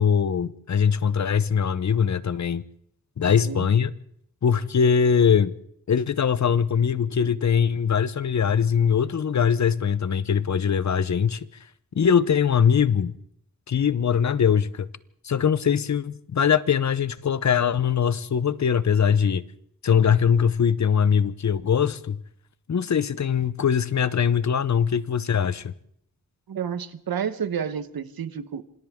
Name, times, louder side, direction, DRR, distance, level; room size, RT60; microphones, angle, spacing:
voice 1, 0.0-2.6 3.2-3.9 4.4-5.5 5.9-11.5 11.9-13.1 13.7-14.9 15.2-19.4 19.8-22.2 22.7-25.7, left 7 dB, 50° left, 0.8 m, -22 dB
voice 2, 3.2-3.7 26.5-28.6, right 7 dB, 90° right, 1.2 m, -30 dB
27.0 x 26.0 x 3.7 m
wide cardioid pair, 120°, 35 cm